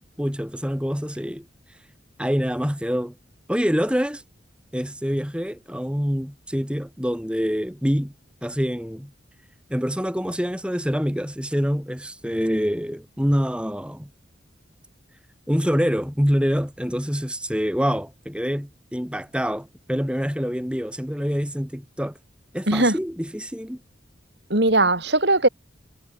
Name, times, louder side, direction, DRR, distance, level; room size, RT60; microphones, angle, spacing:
voice 1, 0.0-1.5 2.2-3.2 3.5-4.2 4.7-8.1 8.4-9.1 9.7-14.1 15.5-22.2 22.5-23.8, equal, 5° right, 3.6 m, -26 dB
voice 2, 22.7-23.0 24.5-25.5, right 2 dB, 60° right, 5.7 m, -19 dB
head